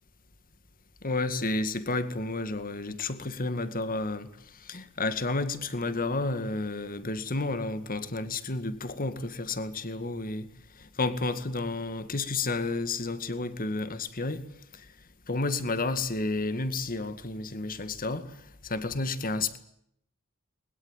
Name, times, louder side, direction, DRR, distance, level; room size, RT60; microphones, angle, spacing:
voice 1, 1.0-10.5 10.8-14.4 14.7-14.9 15.3-19.6, left 3 dB, 40° left, 2.1 m, -31 dB
22.0 x 21.0 x 9.0 m
head